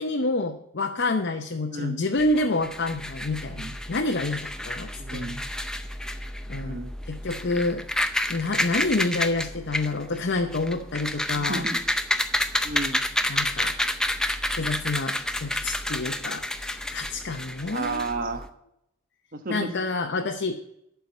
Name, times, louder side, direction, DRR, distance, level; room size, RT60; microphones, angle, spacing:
voice 1, 0.0-5.4 6.5-6.8 7.1-7.8 8.3-11.6 13.3-13.7 14.5-18.1 19.5-20.6, left 2 dB, 50° left, 4 dB, 0.7 m, -28 dB
voice 2, 1.7-2.0 3.5-3.8 5.0-5.4 6.6-6.9 11.3-11.8 12.6-13.1 17.7-18.5 19.3-19.7, right 3 dB, 40° right, 7 dB, 1.1 m, -32 dB
sound 1, 2.2-18.5, left 1 dB, 5° left, 0.5 m, -30 dB
11.5 x 4.6 x 8.1 m, 0.77 s
head